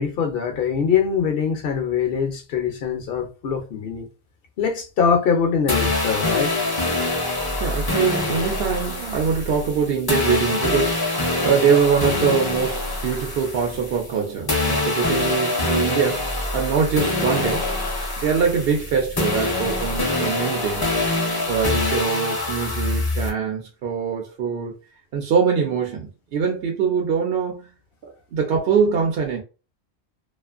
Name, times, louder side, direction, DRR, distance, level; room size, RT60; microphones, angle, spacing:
voice 1, 0.0-4.1 4.6-6.6, left 6 dB, 65° left, 0.8 m, -23 dB
sound 1, 5.7-14.2 14.5-23.3, left 2 dB, 30° left, 0.5 m, -24 dB
voice 2, 7.6-16.3 16.5-17.7 18.2-20.9 21.5-24.7 25.1-27.7 28.3-29.4, right 6 dB, 70° right, 0.8 m, -23 dB
2.5 x 2.3 x 2.4 m
omnidirectional pair, 1.1 m